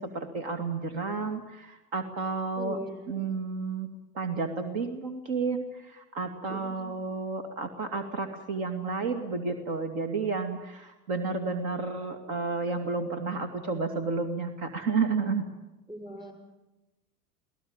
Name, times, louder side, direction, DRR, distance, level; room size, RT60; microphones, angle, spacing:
voice 1, 0.0-2.8 3.1-3.9 4.1-15.4, right 4 dB, 60° right, 6 dB, 2.6 m, -31 dB
voice 2, 2.6-3.3 6.5-6.9 15.9-16.3, right 1 dB, 10° right, 4 dB, 6.3 m, -41 dB
23.0 x 17.5 x 8.9 m, 1.0 s
hypercardioid pair, 105°, 46 cm